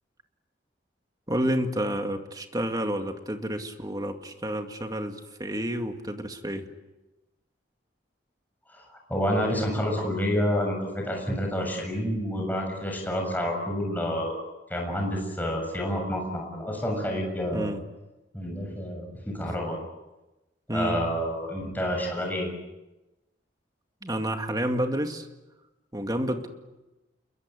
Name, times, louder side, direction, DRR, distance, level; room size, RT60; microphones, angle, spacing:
voice 1, 1.3-6.7 17.5-17.8 20.7-21.0 24.0-25.3 25.9-26.5, equal, 20° right, 5 dB, 2.2 m, -29 dB
voice 2, 8.7-14.4 14.7-17.7 18.3-19.8 20.7-22.5, equal, 10° left, 1 dB, 7.1 m, -29 dB
28.5 x 23.0 x 8.3 m, 1.0 s
head